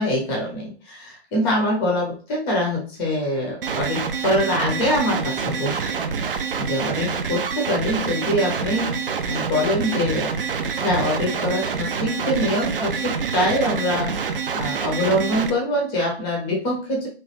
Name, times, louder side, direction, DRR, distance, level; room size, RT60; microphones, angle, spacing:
voice 1, 0.0-5.9 6.6-10.4 10.8-17.1, left 1 dB, 15° left, -1 dB, 0.7 m, -24 dB
sound 1, 3.6-15.5, right 5 dB, 55° right, 0.5 m, -26 dB
3.1 x 2.2 x 3.1 m, 0.39 s
figure-of-eight pair, 130°, 32 cm